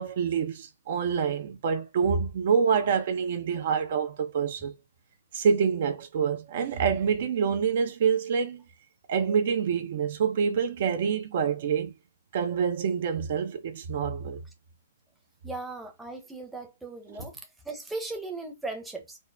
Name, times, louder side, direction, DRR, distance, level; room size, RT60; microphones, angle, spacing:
voice 1, 0.0-4.7 5.3-8.6 9.1-11.9 12.3-14.4, right 6 dB, 55° right, 0.9 m, -26 dB
voice 2, 15.4-17.4 17.6-19.2, right 2 dB, 5° right, 0.9 m, -37 dB
4.2 x 2.2 x 3.4 m
hypercardioid pair, 140°, 0 cm